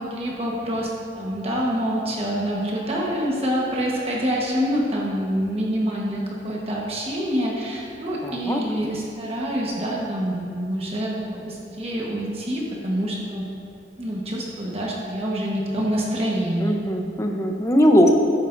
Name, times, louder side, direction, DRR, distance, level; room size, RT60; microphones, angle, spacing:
voice 1, 0.0-13.5 14.0-16.8, equal, 30° right, -3 dB, 1.2 m, -26 dB
voice 2, 8.2-8.6 16.6-18.1, equal, 15° left, 2 dB, 0.7 m, -19 dB
13.0 x 10.5 x 2.6 m, 2.4 s
head